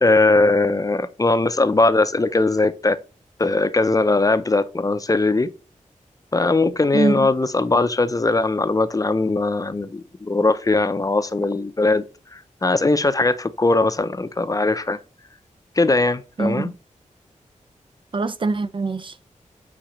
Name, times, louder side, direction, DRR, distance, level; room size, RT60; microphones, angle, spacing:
voice 1, 0.0-3.0 3.4-5.5 6.3-12.0 12.3-15.0 15.8-16.7, left 2 dB, 25° left, 0.5 m, -20 dB
voice 2, 6.9-7.3 16.4-16.7 18.1-19.3, right 3 dB, 40° right, 0.4 m, -23 dB
8.9 x 4.2 x 3.0 m
wide cardioid pair, 85°, 13 cm